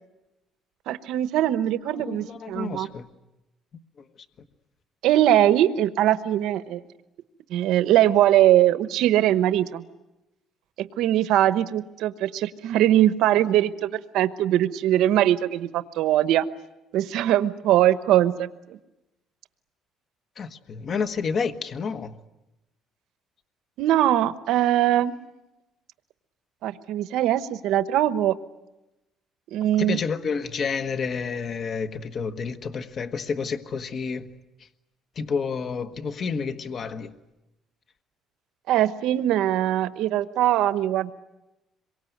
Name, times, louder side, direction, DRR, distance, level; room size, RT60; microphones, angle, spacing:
voice 1, 0.9-2.9 5.0-6.8 7.5-9.8 10.8-16.4 16.9-18.8 23.8-25.1 26.6-28.3 29.5-30.0 38.7-41.1, right 12 dB, 80° right, 1.0 m, -21 dB
voice 2, 1.9-3.1 20.4-22.1 29.8-34.2 35.2-37.1, left 5 dB, 40° left, 1.4 m, -29 dB
26.5 x 23.5 x 9.3 m
cardioid pair, 130°, 0 cm